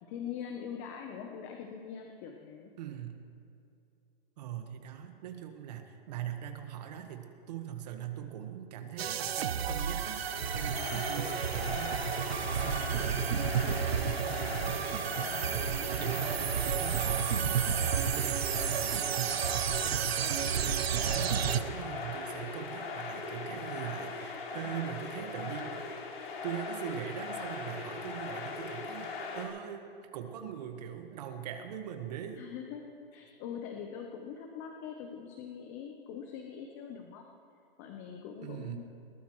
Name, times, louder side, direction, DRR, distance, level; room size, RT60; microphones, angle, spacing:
voice 1, 0.0-2.7 24.6-24.9 32.4-37.3 37.8-38.8, left 7 dB, 25° left, 3 dB, 0.9 m, -43 dB
voice 2, 2.8-3.2 4.4-26.0 26.4-32.5 38.4-38.8, right 10 dB, 40° right, 6 dB, 1.6 m, -42 dB
sound 1, 9.0-21.6, right 8 dB, 75° right, 1.0 m, -31 dB
sound 2, 9.9-29.5, left 4 dB, 70° left, 5.0 m, -40 dB
21.0 x 19.5 x 3.2 m, 2.6 s
hypercardioid pair, 155°, 31 cm